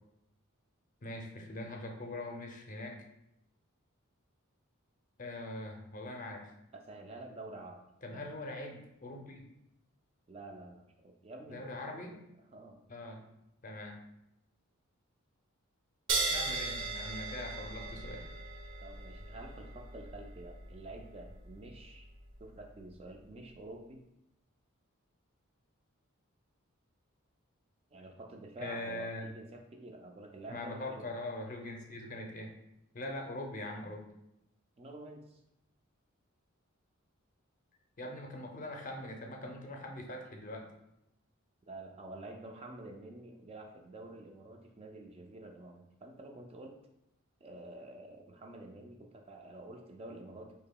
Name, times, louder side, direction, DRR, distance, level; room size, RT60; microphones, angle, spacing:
voice 1, 1.0-3.0 5.2-6.5 8.0-9.4 11.5-12.1 12.9-13.3 13.6-14.0 16.3-18.2 28.6-29.3 30.5-32.5 32.9-34.0 38.0-40.7, left 1 dB, 40° left, 2 dB, 0.5 m, -42 dB
voice 2, 6.7-7.8 8.1-8.3 10.3-12.2 12.5-12.8 18.8-22.1 22.4-24.0 27.9-31.1 34.8-35.4 41.7-46.8 47.4-50.5, right 2 dB, 30° right, 3 dB, 0.3 m, -48 dB
sound 1, 16.1-23.1, right 3 dB, 60° right, 0.6 m, -39 dB
4.7 x 2.8 x 2.2 m, 0.83 s
head